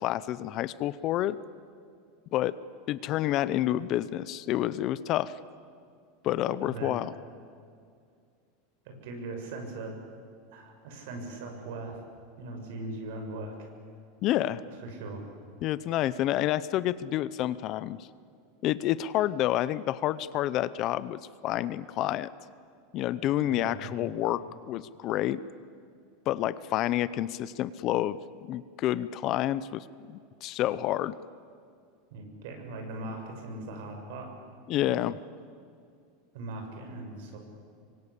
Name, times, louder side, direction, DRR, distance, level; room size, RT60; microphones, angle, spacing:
voice 1, 0.0-1.4 2.3-2.5 2.9-5.4 6.2-7.1 14.2-14.6 15.6-18.1 18.6-22.3 22.9-25.4 26.3-31.1 34.7-35.2, left 13 dB, 35° left, 17 dB, 0.6 m, -29 dB
voice 2, 6.6-7.0 8.8-10.0 10.5-12.0 12.4-13.5 14.8-15.2 15.9-16.0 23.5-24.1 32.1-34.3 34.8-35.0 36.3-37.4, right 2 dB, 65° right, 3 dB, 6.7 m, -39 dB
26.5 x 24.5 x 8.4 m, 2.3 s
supercardioid pair, 165°, 0 cm